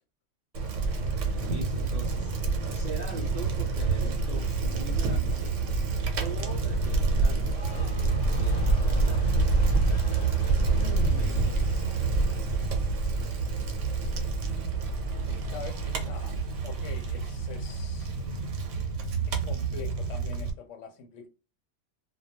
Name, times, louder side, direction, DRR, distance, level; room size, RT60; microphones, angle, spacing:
Bicycle, 0.5-20.5, right 3 dB, 85° right, 0.9 m, -27 dB
voice 1, 0.9-2.4 2.7-5.6 6.1-9.5 10.9-11.9, right 4 dB, 65° right, 0.4 m, -43 dB
sound 1, 7.4-13.7 14.0-14.5, left 3 dB, 50° left, 0.6 m, -50 dB
voice 2, 10.6-11.5 15.3-16.3 16.6-18.1 19.3-21.3, left 5 dB, 80° left, 0.9 m, -43 dB
2.2 x 2.2 x 2.8 m
omnidirectional pair, 1.2 m